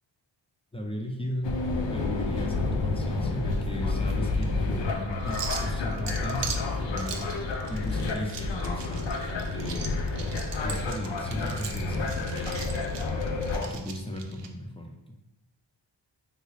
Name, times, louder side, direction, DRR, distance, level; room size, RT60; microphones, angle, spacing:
voice 1, 0.7-1.6 1.9-7.3 7.7-10.0 10.6-12.9 13.6-15.2, equal, 15° left, 1 dB, 0.4 m, -35 dB
sound 1, 1.4-13.7, left 3 dB, 65° left, 0.6 m, -30 dB
sound 2, 2.3-14.5, right 6 dB, 65° right, 0.5 m, -41 dB
3.6 x 2.4 x 3.1 m, 0.94 s
wide cardioid pair, 65°, 47 cm